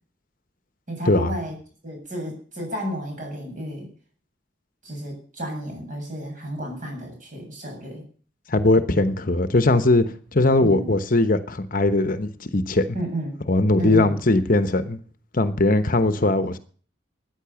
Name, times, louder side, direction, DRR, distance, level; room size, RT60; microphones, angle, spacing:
voice 1, 0.9-1.6 1.8-3.9 4.8-8.0 10.6-10.9 12.9-13.4 13.8-14.1, right 1 dB, 40° right, 7.9 m, -32 dB
voice 2, 8.5-10.0 10.3-12.8 13.5-15.0 15.3-16.6, left 2 dB, 45° left, 1.0 m, -20 dB
13.5 x 10.0 x 7.1 m
head